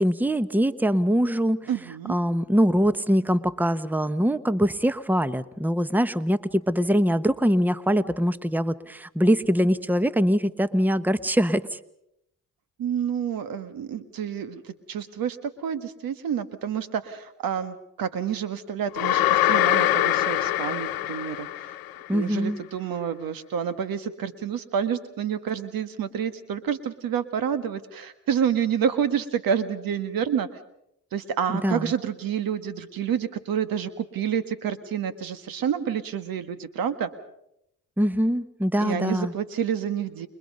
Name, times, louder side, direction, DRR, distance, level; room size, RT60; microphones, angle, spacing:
voice 1, 0.0-1.6 2.1-11.8 22.1-22.6 31.6-31.9 38.0-39.3, equal, 5° right, 14 dB, 1.1 m, -23 dB
voice 2, 1.7-2.2 12.8-21.8 22.1-30.5 31.1-37.1 38.8-40.3, right 8 dB, 75° right, 12 dB, 1.6 m, -28 dB
sound 1, 19.0-22.1, left 14 dB, 90° left, 1.0 m, -23 dB
30.0 x 22.0 x 5.4 m, 0.79 s
supercardioid pair, 55°, 35 cm